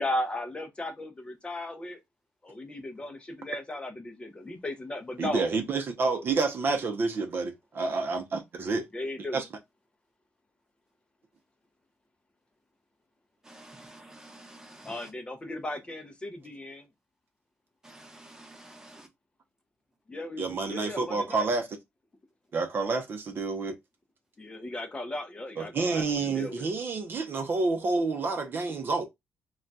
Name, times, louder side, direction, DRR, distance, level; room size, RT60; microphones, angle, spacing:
voice 1, 0.0-2.0 2.4-5.5 8.9-9.4 14.8-16.9 20.1-21.5 24.4-26.7, left 1 dB, 20° left, 0.5 m, -36 dB
voice 2, 5.2-8.9 9.3-9.5 20.4-21.7 22.5-23.8 25.6-29.1, right 3 dB, 45° right, 0.6 m, -29 dB
voice 3, 13.4-15.1 17.8-19.1, right 1 dB, 10° right, 0.9 m, -50 dB
2.3 x 2.2 x 3.9 m
cardioid pair, 100°, 5 cm